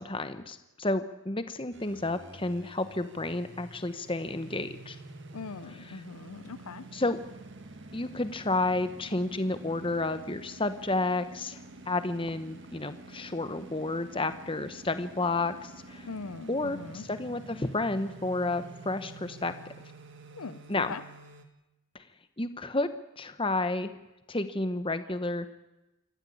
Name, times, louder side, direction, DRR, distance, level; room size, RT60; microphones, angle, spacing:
voice 1, 0.0-5.0 6.9-7.2 7.9-11.6 11.9-16.1 16.5-19.5 20.7-21.0 21.9-22.0 22.4-22.9 23.2-23.9 24.3-25.5, left 2 dB, 25° left, 11 dB, 1.1 m, -31 dB
sound 1, 1.7-21.4, right 2 dB, 55° right, 1.9 m, -48 dB
voice 2, 5.3-6.9 16.0-17.0 20.3-20.6 20.9-21.0, left 4 dB, 85° left, 16 dB, 0.7 m, -41 dB
26.0 x 14.5 x 8.5 m, 0.99 s
head